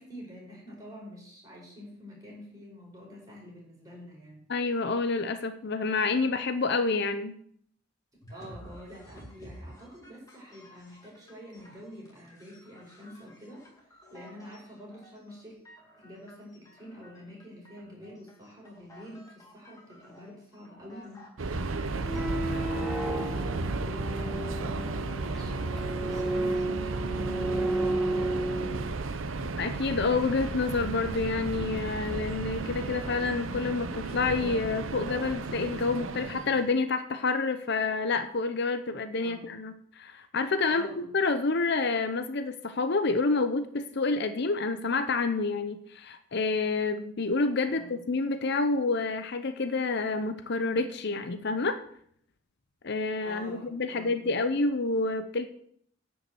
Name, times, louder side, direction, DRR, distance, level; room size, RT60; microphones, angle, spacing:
voice 1, 0.0-4.5 8.3-13.7 14.1-15.6 16.0-22.4 23.1-28.8 39.2-39.6 40.7-41.1 47.7-48.0 53.2-54.5, equal, 20° right, -3 dB, 5.3 m, -47 dB
voice 2, 4.5-7.3 29.6-51.8 52.8-55.5, left 3 dB, 55° left, 9 dB, 0.7 m, -28 dB
sound 1, 8.2-22.5, equal, 15° left, 2.3 m, -53 dB
Subway metro underground, 21.4-36.7, right 3 dB, 80° right, 0.7 m, -34 dB
sound 2, 22.0-28.9, right 2 dB, ahead, 1.2 m, -32 dB
10.5 x 5.5 x 7.9 m, 0.65 s
head